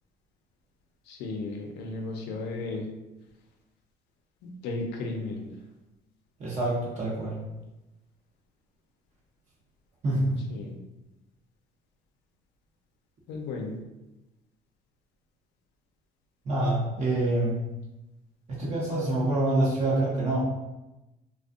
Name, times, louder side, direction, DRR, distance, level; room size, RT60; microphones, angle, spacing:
voice 1, 1.1-2.9 4.4-5.5 10.5-10.7 13.3-13.8, left 3 dB, 90° left, 2 dB, 0.5 m, -34 dB
voice 2, 6.4-7.3 10.0-10.4 16.5-17.6 18.5-20.4, right 1 dB, 45° right, -6 dB, 0.7 m, -26 dB
2.5 x 2.1 x 2.3 m, 0.99 s
cardioid pair, 110°, 17 cm